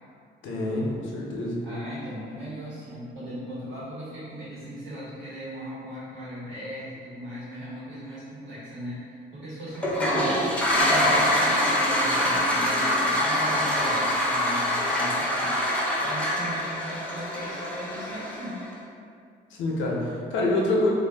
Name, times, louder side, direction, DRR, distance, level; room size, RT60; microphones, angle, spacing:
voice 1, 0.4-1.6 19.6-20.9, left 2 dB, 80° left, -3 dB, 0.6 m, -26 dB
voice 2, 1.6-18.6, equal, 75° right, -10 dB, 1.3 m, -38 dB
Toilet flush, 9.7-18.6, left 1 dB, 5° left, 0.6 m, -24 dB
2.5 x 2.1 x 3.3 m, 2.4 s
cardioid pair, 90°, 20 cm